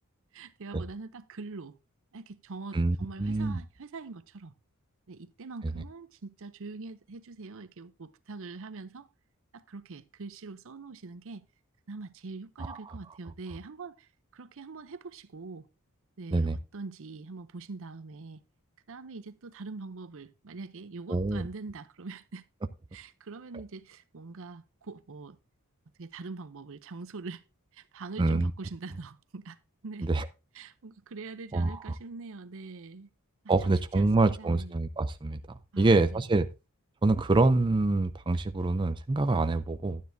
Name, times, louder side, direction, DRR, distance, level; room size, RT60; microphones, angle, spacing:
voice 1, 0.3-1.8 2.1-4.5 5.1-9.1 9.5-11.4 11.9-15.7 16.2-18.4 18.9-22.5 22.9-25.4 26.0-27.4 27.7-29.6 29.8-30.1 30.5-33.1 33.6-34.8 35.7-36.2, right 3 dB, 60° right, 0.6 m, -43 dB
voice 2, 2.7-3.6 12.6-12.8 16.3-16.6 21.1-21.5 28.2-28.5 30.0-30.3 31.5-31.9 33.5-35.4 35.8-36.5 37.0-40.0, right 2 dB, 20° right, 0.4 m, -26 dB
12.0 x 9.4 x 2.7 m
head